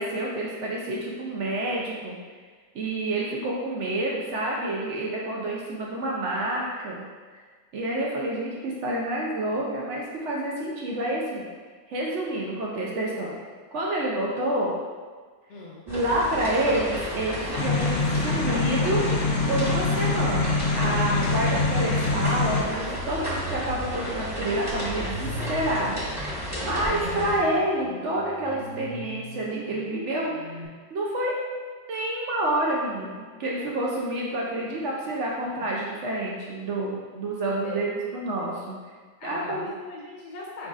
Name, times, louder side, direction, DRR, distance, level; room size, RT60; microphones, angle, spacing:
voice 1, 0.0-2.2 2.7-7.0 7.7-11.5 11.9-13.3 13.7-14.7 15.9-30.6 30.9-31.5 31.9-38.8 39.2-39.7, right 1 dB, 70° right, -3 dB, 0.6 m, -28 dB
voice 2, 15.5-15.8 35.5-35.7 37.6-37.9 39.2-40.7, left 2 dB, 70° left, -3 dB, 1.5 m, -39 dB
sound 1, 15.9-27.4, equal, 10° right, 0.8 m, -33 dB
sound 2, 17.6-22.6, left 3 dB, 85° left, 1.3 m, -25 dB
sound 3, 20.3-30.7, equal, 45° right, 1.3 m, -39 dB
5.1 x 3.9 x 2.4 m, 1.5 s
omnidirectional pair, 1.9 m